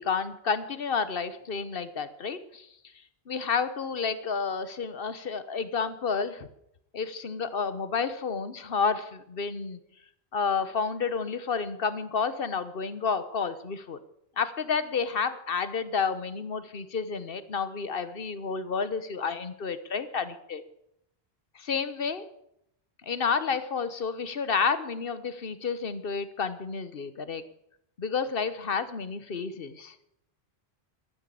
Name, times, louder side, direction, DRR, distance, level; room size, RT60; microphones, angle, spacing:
voice 1, 0.0-2.7 3.3-6.5 6.9-9.8 10.3-14.0 14.4-20.6 21.6-22.2 23.1-27.4 28.0-29.9, left 5 dB, 65° left, 13 dB, 1.2 m, -30 dB
14.0 x 10.0 x 8.5 m, 0.78 s
omnidirectional pair, 1.0 m